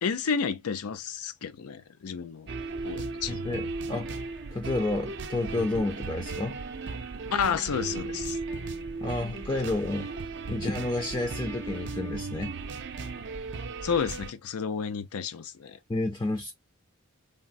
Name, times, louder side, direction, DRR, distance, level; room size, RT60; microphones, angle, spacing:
voice 1, 0.0-2.5 2.8-3.4 7.3-8.4 13.8-15.8, left 6 dB, 90° left, 0.5 m, -31 dB
sound 1, 2.5-14.3, right 3 dB, 55° right, 0.4 m, -36 dB
voice 2, 3.3-4.1 4.5-6.6 9.0-10.1 10.5-12.5 15.9-16.5, left 2 dB, 20° left, 0.4 m, -30 dB
3.5 x 2.0 x 2.5 m
head